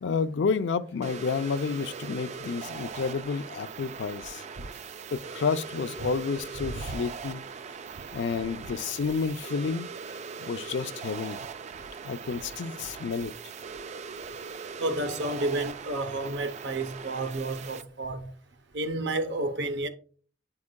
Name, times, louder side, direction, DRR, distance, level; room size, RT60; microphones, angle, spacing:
voice 1, 0.0-4.4 5.1-7.4 8.1-9.9 10.5-11.5 12.0-13.3, left 5 dB, 70° left, 0.4 m, -30 dB
sound 1, 1.0-17.8, right 6 dB, 40° right, 0.3 m, -40 dB
voice 2, 6.6-6.9 14.8-18.3 18.7-19.9, right 2 dB, 65° right, 0.7 m, -31 dB
9.4 x 4.8 x 2.2 m
head